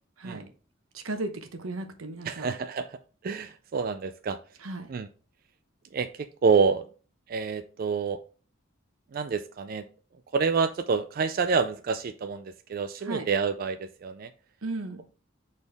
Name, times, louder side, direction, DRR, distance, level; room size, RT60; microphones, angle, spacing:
voice 1, 0.9-2.5 4.6-4.9 13.0-13.3 14.6-15.0, right 2 dB, 90° right, 7 dB, 1.0 m, -35 dB
voice 2, 2.2-3.0 3.2-4.4 4.9-5.1 5.9-6.9 7.3-8.2 9.1-9.8 10.3-14.3, right 5 dB, 45° right, 9 dB, 0.3 m, -28 dB
7.0 x 4.1 x 3.4 m, 0.38 s
head